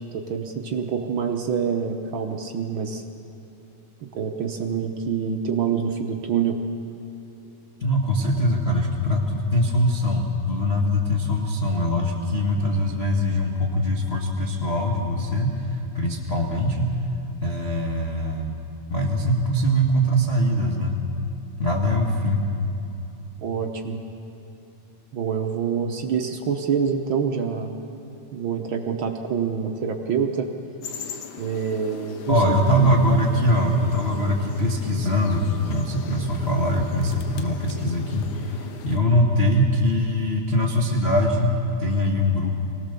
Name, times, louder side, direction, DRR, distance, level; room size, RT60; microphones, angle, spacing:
voice 1, 0.1-3.0 4.1-6.6 23.4-24.0 25.1-27.7 28.3-30.5 31.4-32.9, right 7 dB, 70° right, 4 dB, 1.1 m, -26 dB
voice 2, 7.8-17.0 17.4-18.6 18.9-21.0 21.6-22.5 32.3-42.5, equal, 30° left, -2 dB, 1.1 m, -22 dB
sound 1, 30.8-39.0, left 7 dB, 80° left, 2.6 m, -40 dB
24.0 x 18.5 x 6.9 m, 2.9 s
omnidirectional pair, 3.5 m